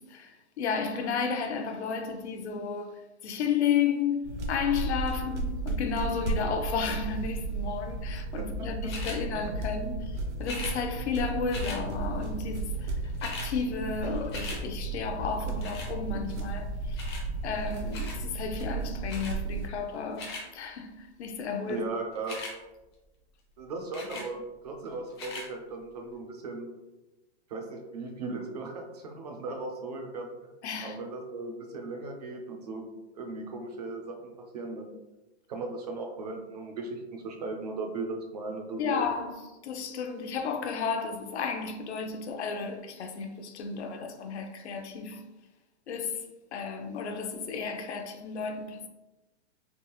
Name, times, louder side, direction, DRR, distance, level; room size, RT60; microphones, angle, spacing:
voice 1, 0.0-12.9 13.2-17.0 17.4-21.8 30.6-31.0 38.8-45.2 45.9-46.2 46.5-48.9, left 6 dB, 75° left, 0.6 m, -33 dB
sound 1, 4.2-19.7, right 2 dB, 85° right, 0.7 m, -34 dB
voice 2, 8.6-8.9 9.3-9.4 21.7-22.4 23.6-26.7 27.5-30.3 30.8-32.9 33.1-35.0 35.5-39.0, right 3 dB, 35° right, 0.4 m, -37 dB
sound 2, 8.9-9.2 10.4-10.8 11.5-11.8 12.7-12.8 13.0-13.5 13.9-14.6 15.6-15.9 17.0-17.2 17.9-18.2 19.1-19.3 19.9-20.4 22.1-22.5 23.9-24.3 25.1-25.5 26.1-26.2, left 3 dB, 25° left, 0.4 m, -39 dB
3.5 x 2.3 x 2.9 m
hypercardioid pair, 165°, 34 cm